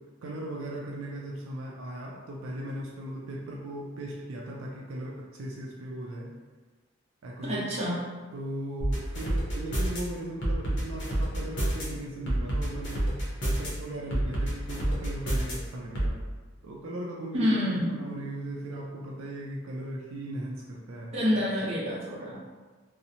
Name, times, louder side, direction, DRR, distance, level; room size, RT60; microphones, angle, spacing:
voice 1, 0.0-6.3 7.2-7.9 8.3-16.1 16.6-21.1, right 1 dB, 80° right, -2 dB, 0.4 m, -38 dB
voice 2, 7.4-8.0 17.3-17.9 21.1-22.4, left 1 dB, 30° right, -8 dB, 0.7 m, -27 dB
sound 1, 8.8-10.0 10.4-11.8 12.3-13.7 14.1-15.5 16.0-16.1, right 1 dB, 55° left, 0.7 m, -27 dB
2.7 x 2.0 x 2.7 m, 1.3 s
head